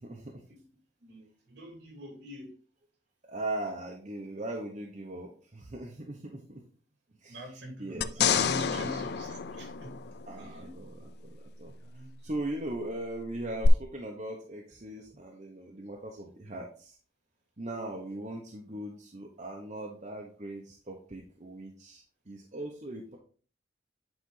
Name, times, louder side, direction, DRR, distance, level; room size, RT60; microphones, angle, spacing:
voice 1, 0.0-0.3 3.3-6.6 7.2-7.4 7.8-8.4 10.3-11.7 12.2-16.9 17.6-23.2, right 1 dB, 40° right, -1 dB, 1.1 m, -39 dB
voice 2, 1.0-2.5 7.3-10.0 10.4-10.7 11.8-12.3, right 1 dB, 65° right, 2 dB, 2.7 m, -44 dB
sound 1, 8.0-10.5 13.6-13.7, left 7 dB, 60° left, 0.5 m, -29 dB
9.2 x 4.1 x 3.9 m, 0.41 s
head